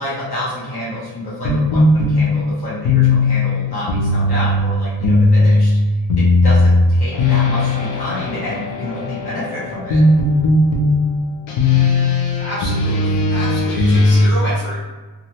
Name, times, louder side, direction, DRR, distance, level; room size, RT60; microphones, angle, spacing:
voice 1, 0.0-10.0, left 1 dB, 60° left, -9 dB, 1.0 m, -28 dB
sound 1, 1.4-14.3, left 2 dB, 90° left, 0.7 m, -16 dB
voice 2, 12.4-14.9, equal, 25° left, -9 dB, 1.3 m, -29 dB
3.0 x 2.5 x 2.8 m, 1.2 s
wide cardioid pair, 175°, 44 cm